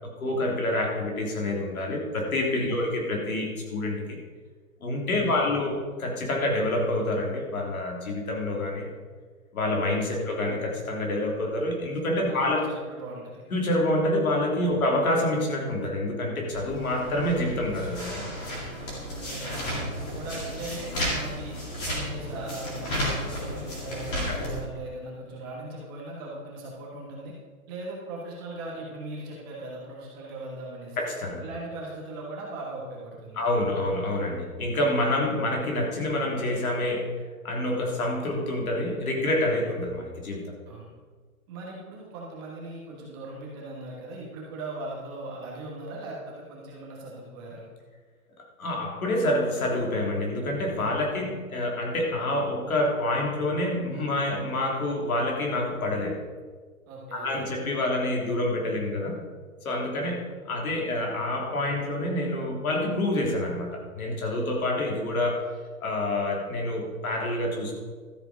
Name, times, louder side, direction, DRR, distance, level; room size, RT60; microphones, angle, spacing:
voice 1, 0.0-4.2 4.8-8.9 9.5-12.6 13.5-18.3 24.3-24.4 31.0-31.4 33.3-37.1 37.4-40.6 48.6-56.2 57.1-59.2 59.6-65.5 65.8-67.8, left 1 dB, 75° left, 0 dB, 3.4 m, -27 dB
voice 2, 5.1-5.5 10.1-10.3 12.3-13.5 14.7-14.9 19.1-21.5 21.9-27.3 27.7-31.0 31.4-33.4 39.5-39.7 40.7-40.9 41.5-47.7 56.9-57.5, right 2 dB, 15° right, -4 dB, 1.4 m, -39 dB
sound 1, 16.5-24.6, equal, 20° left, 2.4 m, -33 dB
13.0 x 7.6 x 5.1 m, 1.5 s
hypercardioid pair, 175°, 43 cm